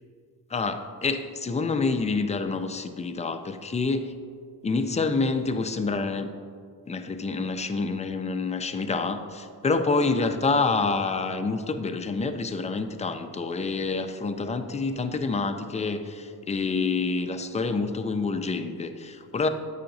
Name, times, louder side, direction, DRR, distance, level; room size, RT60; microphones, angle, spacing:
voice 1, 0.5-4.1 4.6-6.3 6.9-19.5, left 3 dB, 20° left, 7 dB, 0.3 m, -27 dB
8.4 x 5.7 x 2.6 m, 2.2 s
wide cardioid pair, 100°, 37 cm